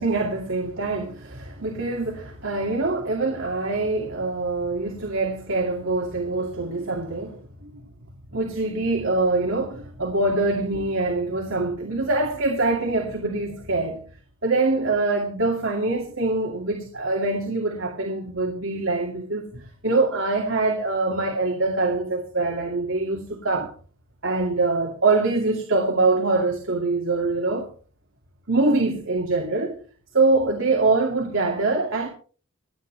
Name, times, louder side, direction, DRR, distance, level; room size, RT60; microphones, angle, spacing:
voice 1, 0.0-7.8 8.3-14.0 14.4-23.7 24.2-27.7 28.5-29.8 30.1-32.1, right 3 dB, 65° right, 2.3 m, -24 dB
26.5 x 9.3 x 3.3 m
head